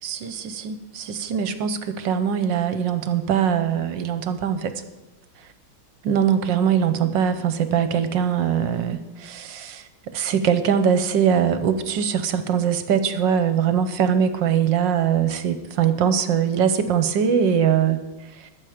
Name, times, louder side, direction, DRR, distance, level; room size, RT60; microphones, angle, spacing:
voice 1, 0.0-4.7 6.0-18.0 18.3-18.5, right 8 dB, 70° right, 10 dB, 1.5 m, -22 dB
21.0 x 7.4 x 5.0 m, 1.1 s
omnidirectional pair, 2.2 m